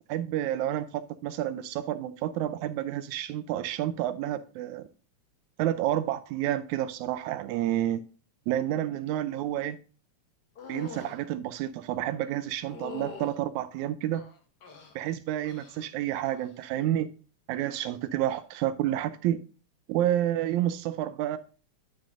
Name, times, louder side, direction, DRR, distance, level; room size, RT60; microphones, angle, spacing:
voice 1, 0.1-4.9 5.6-8.0 8.5-9.8 10.7-14.2 15.0-17.1 17.5-19.4 19.9-21.4, right 12 dB, 90° right, 2.0 m, -29 dB
sound 1, 10.6-11.2 12.6-13.4 14.1-15.0 15.4-15.9 16.2-16.7 18.2-18.4, left 5 dB, 55° left, 1.1 m, -44 dB
10.5 x 6.2 x 2.6 m
omnidirectional pair, 3.3 m